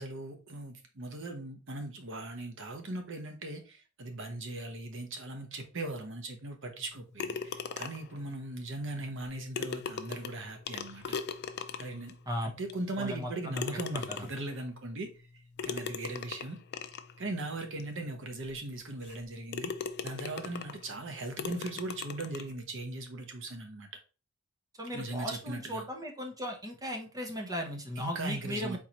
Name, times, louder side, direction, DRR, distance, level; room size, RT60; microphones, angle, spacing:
voice 1, 0.0-11.2 11.8-12.2 12.4-15.1 15.6-16.6 17.2-19.7 20.0-23.9 24.9-25.8 28.0-28.8, right 2 dB, 65° right, 1.0 m, -39 dB
sound 1, 7.2-8.2 9.2-9.3 9.5-12.1 12.7-12.8 13.5-14.5 15.6-17.1 17.8-17.9 18.4-18.5 19.0-19.2 19.5-20.8 21.4-22.5, left 6 dB, 50° left, 0.4 m, -38 dB
voice 2, 13.0-13.6 14.1-14.3 24.8-28.8, equal, 15° right, 0.9 m, -37 dB
4.4 x 3.8 x 3.0 m
head